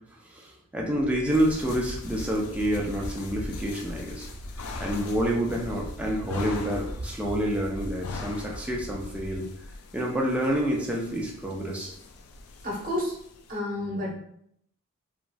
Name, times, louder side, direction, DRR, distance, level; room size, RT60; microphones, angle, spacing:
voice 1, 0.3-4.3 4.8-9.5 9.9-11.9, equal, 5° right, -2 dB, 0.4 m, -28 dB
sound 1, 0.8-9.4, right 1 dB, 75° right, 0.5 m, -41 dB
sound 2, 1.3-13.6, left 2 dB, 85° left, 0.4 m, -41 dB
voice 2, 12.6-13.1 13.5-14.2, left 1 dB, 40° right, -4 dB, 0.9 m, -30 dB
3.1 x 2.5 x 2.2 m, 0.71 s
head